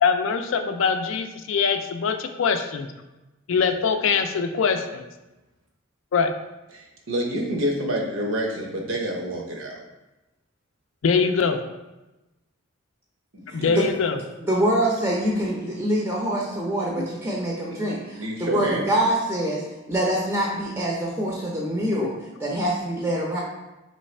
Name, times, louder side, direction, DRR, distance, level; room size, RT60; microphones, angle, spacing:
voice 1, 0.0-2.9 3.5-5.1 6.1-6.3 11.0-11.6 13.5-14.2 17.0-17.1 22.2-22.3, left 5 dB, 65° left, 7 dB, 0.4 m, -23 dB
voice 2, 6.7-9.8 13.3-13.9 18.1-18.8, right 1 dB, 70° right, 0 dB, 0.8 m, -28 dB
voice 3, 13.5-13.8 14.4-23.4, right 1 dB, 10° right, -4 dB, 0.5 m, -25 dB
3.2 x 3.2 x 4.3 m, 1.0 s
head